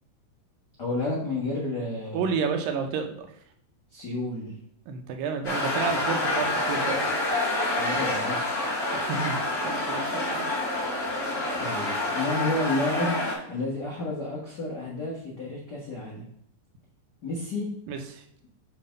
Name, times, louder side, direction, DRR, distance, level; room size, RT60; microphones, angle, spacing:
voice 1, 0.8-2.3 3.9-4.5 7.7-8.5 11.6-13.2 13.5-16.2 17.2-17.6, left 2 dB, 70° left, -5 dB, 0.9 m, -31 dB
voice 2, 2.1-3.3 4.9-7.2 8.9-9.4 9.6-10.5 17.9-18.2, right 6 dB, 80° right, 5 dB, 2.4 m, -30 dB
sound 1, 5.4-13.3, left 2 dB, 25° left, 2.0 m, -27 dB
7.5 x 3.4 x 5.2 m, 0.70 s
omnidirectional pair, 4.0 m